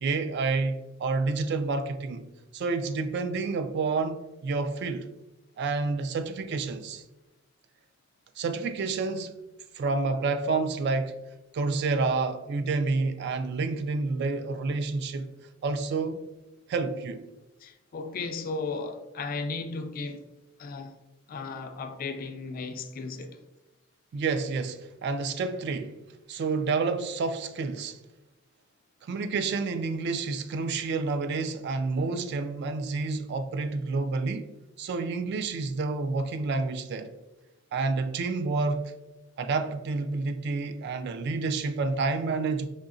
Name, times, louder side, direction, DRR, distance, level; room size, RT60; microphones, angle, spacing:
voice 1, 0.0-2.3 2.5-5.1 5.6-7.0 8.4-9.3 9.7-11.1 11.5-15.3 15.6-16.2 16.7-17.2 24.1-26.0 26.3-28.0 29.0-34.5 34.8-37.1 37.7-38.9 39.4-42.7, right 4 dB, 55° right, 0.3 m, -29 dB
voice 2, 17.6-20.2 20.6-20.9 21.3-23.4, left 4 dB, 45° left, 0.3 m, -35 dB
5.0 x 2.7 x 2.5 m
head